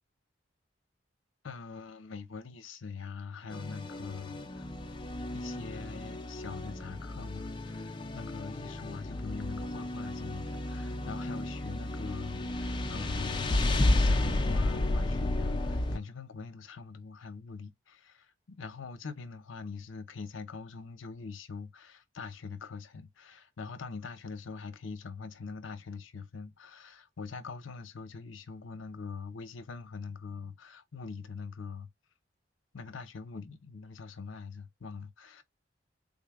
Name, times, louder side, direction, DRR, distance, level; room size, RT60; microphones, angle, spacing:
voice 1, 1.4-4.7 5.3-31.9 32.7-35.4, left 5 dB, 85° left, 0.6 m, -43 dB
sound 1, 3.5-16.0, left 2 dB, 25° left, 0.4 m, -32 dB
3.7 x 2.1 x 3.4 m
head